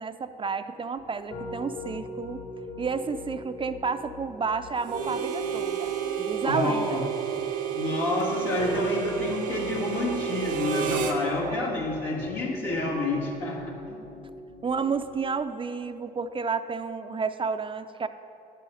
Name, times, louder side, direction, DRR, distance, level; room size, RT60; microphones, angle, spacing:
voice 1, 0.0-2.4 2.8-7.0 11.4-11.8 14.6-18.1, right 5 dB, 30° right, 9 dB, 0.4 m, -31 dB
Piano, 1.0-15.2, left 4 dB, 65° left, 2.2 m, -41 dB
Harmonica, 4.9-11.2, right 8 dB, 90° right, 0.8 m, -30 dB
voice 2, 6.4-7.0 7.3-7.4 7.7-14.0, left 2 dB, 85° left, -3 dB, 1.7 m, -29 dB
10.5 x 5.5 x 6.3 m, 2.8 s
supercardioid pair, 65°, 18 cm